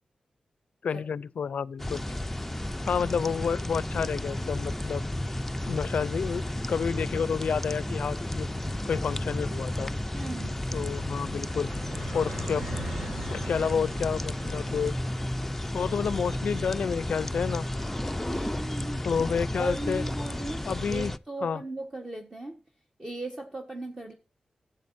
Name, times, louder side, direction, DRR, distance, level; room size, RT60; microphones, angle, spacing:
voice 1, 0.8-2.0 2.9-5.1 5.7-8.5 8.8-9.9 10.7-11.8 12.1-12.6 13.3-14.9 15.7-17.7 19.0-20.0 20.6-21.1 21.4-21.6, left 6 dB, 75° left, 0.4 m, -30 dB
sound 1, 1.8-21.2, left 1 dB, 10° left, 0.4 m, -33 dB
sound 2, 8.3-19.1, right 1 dB, 65° right, 4.5 m, -43 dB
voice 2, 10.1-10.6 18.3-19.0 19.5-20.6 20.9-22.6 23.0-24.1, right 2 dB, 20° right, 1.3 m, -37 dB
15.0 x 7.7 x 2.6 m
wide cardioid pair, 125°, 2 cm